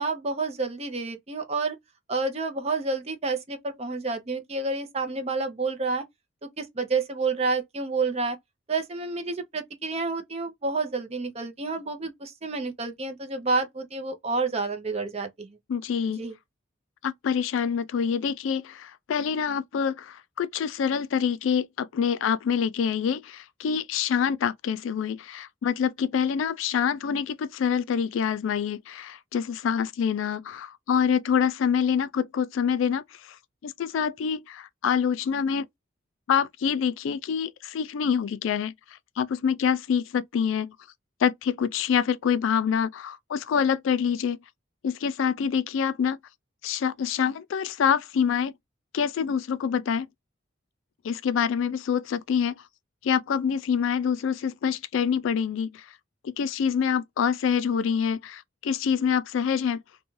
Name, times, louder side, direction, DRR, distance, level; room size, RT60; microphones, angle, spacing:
voice 1, 0.0-1.8 2.1-6.0 6.4-8.4 8.7-15.6 16.2-16.4, right 3 dB, 30° right, 0.6 m, -29 dB
voice 2, 15.7-16.2 17.0-33.4 33.6-35.7 36.3-38.7 39.2-40.7 41.2-44.4 44.8-46.2 46.6-48.5 48.9-50.1 51.0-52.5 53.0-55.9 56.2-59.8, left 7 dB, 75° left, 0.3 m, -26 dB
2.5 x 2.2 x 3.0 m
head